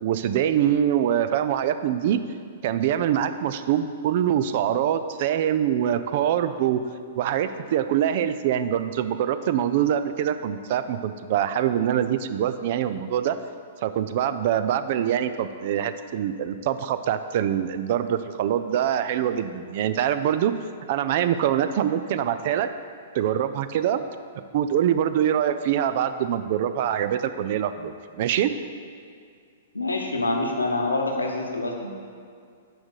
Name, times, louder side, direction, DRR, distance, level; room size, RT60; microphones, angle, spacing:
voice 1, 0.0-2.2 2.6-6.8 7.2-13.4 13.8-20.5 20.9-22.7 23.1-24.0 24.5-28.5, right 10 dB, 50° right, 11 dB, 0.4 m, -24 dB
voice 2, 29.7-31.9, left 2 dB, 80° left, 1 dB, 1.0 m, -26 dB
6.1 x 5.0 x 6.4 m, 2.3 s
figure-of-eight pair, 110°, 0 cm